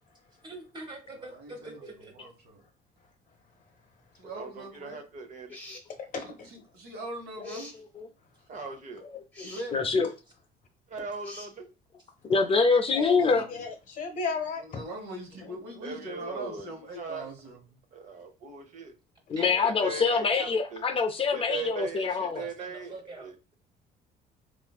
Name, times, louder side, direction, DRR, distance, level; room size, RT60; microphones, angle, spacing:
voice 1, 0.4-2.1 19.3-20.5 22.1-23.3, right 2 dB, 25° right, 1.0 m, -44 dB
voice 2, 1.3-1.8 2.1-2.6 4.2-5.0 6.5-7.8 9.4-10.0 13.1-13.6 14.7-17.8, right 1 dB, 75° right, 1.1 m, -41 dB
voice 3, 4.3-5.6 8.5-9.0 10.9-11.7 15.8-16.7 17.0-17.3 17.9-18.9 19.6-20.5 20.7-20.8 21.3-23.3, right 4 dB, 45° right, 0.7 m, -39 dB
sound 1, 5.5-5.9 7.4-7.8 9.3-9.7 11.2-11.5, left 2 dB, 10° left, 0.8 m, -45 dB
voice 4, 6.1-6.5 12.9-14.8, left 4 dB, 50° left, 0.9 m, -35 dB
voice 5, 9.7-10.1 12.3-13.5 19.3-22.4, left 4 dB, 35° left, 0.4 m, -25 dB
3.4 x 2.5 x 2.3 m
cardioid pair, 110°, 17 cm